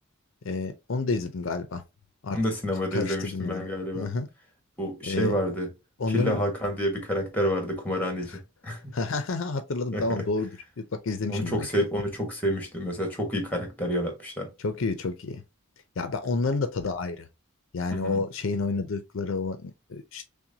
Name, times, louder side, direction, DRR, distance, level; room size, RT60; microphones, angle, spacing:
voice 1, 0.4-1.8 2.2-2.4 2.9-3.6 3.9-4.3 5.1-5.3 6.0-6.4 8.9-10.5 11.0-11.7 14.6-15.4 16.0-17.3 17.7-20.3, left 3 dB, 65° left, 0.5 m, -29 dB
voice 2, 2.3-4.1 4.8-5.7 6.1-8.9 9.9-10.3 11.3-14.5 17.9-18.2, equal, 10° left, 1.2 m, -29 dB
5.8 x 2.2 x 2.7 m
head